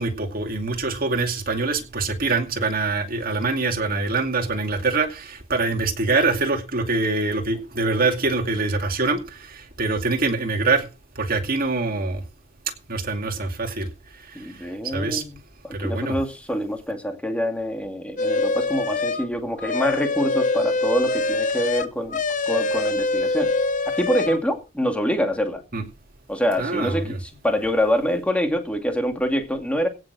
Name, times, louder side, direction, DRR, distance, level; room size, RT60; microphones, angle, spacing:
voice 1, 0.0-10.9 11.2-12.2 12.9-13.9 14.1-15.2 15.7-16.2 25.7-25.8 26.6-27.2, right 3 dB, 50° right, 2.4 m, -24 dB
voice 2, 14.3-15.4 15.6-23.5 23.9-25.6 26.3-29.9, equal, 5° left, 2.3 m, -25 dB
sound 1, 18.2-19.3 19.6-24.4, left 3 dB, 45° left, 0.9 m, -24 dB
17.0 x 6.4 x 6.2 m
head